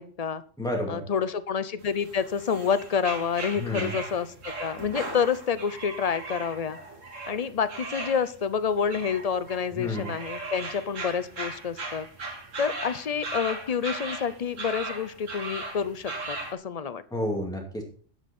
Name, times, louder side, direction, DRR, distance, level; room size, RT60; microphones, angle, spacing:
voice 1, 0.0-0.4 0.9-6.8 7.3-12.1 12.6-17.0, left 7 dB, 45° left, 14 dB, 0.5 m, -28 dB
voice 2, 0.6-1.0 3.6-4.0 9.8-10.1 17.1-17.8, left 1 dB, 5° left, 0 dB, 2.3 m, -30 dB
sound 1, 1.8-16.5, right 3 dB, 80° right, 2.2 m, -38 dB
11.0 x 8.0 x 4.3 m, 0.43 s
omnidirectional pair, 1.3 m